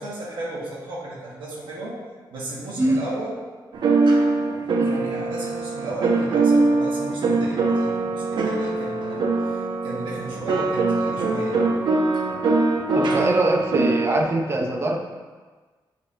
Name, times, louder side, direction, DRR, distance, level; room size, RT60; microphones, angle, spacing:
voice 1, 0.0-2.0 2.3-3.4 4.8-11.6, right 1 dB, 85° right, -7 dB, 1.6 m, -35 dB
sound 1, 3.7-14.2, right 3 dB, 70° right, 0.9 m, -22 dB
voice 2, 12.9-15.2, right 2 dB, 30° right, 2 dB, 0.7 m, -23 dB
9.9 x 4.5 x 2.9 m, 1.4 s
wide cardioid pair, 145°, 8 cm